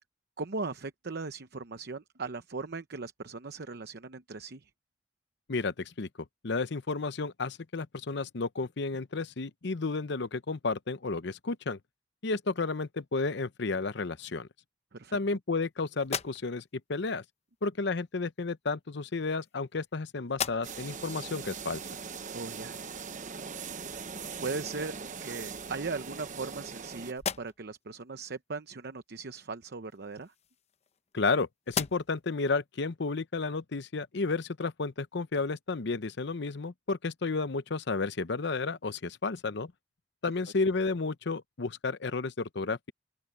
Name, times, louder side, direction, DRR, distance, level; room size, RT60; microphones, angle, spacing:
voice 1, 0.4-4.7 14.9-15.2 22.3-22.9 24.4-24.9 25.2-30.3, right 4 dB, 60° right, 0.8 m, -38 dB
voice 2, 5.5-6.1 6.4-11.8 12.2-14.5 15.1-17.2 17.6-21.8 31.1-39.7 40.2-42.9, left 3 dB, 65° left, 0.8 m, -32 dB
sound 1, 16.0-16.8 17.9-18.1 19.0-19.9 20.3-21.0 21.5-21.6 24.2-24.4 24.8-25.5 26.1-26.8 27.1-27.8 29.8-31.3 31.6-32.3, left 6 dB, 35° left, 0.8 m, -39 dB
sound 2, 20.6-27.1, right 5 dB, 45° right, 1.1 m, -41 dB
open air
head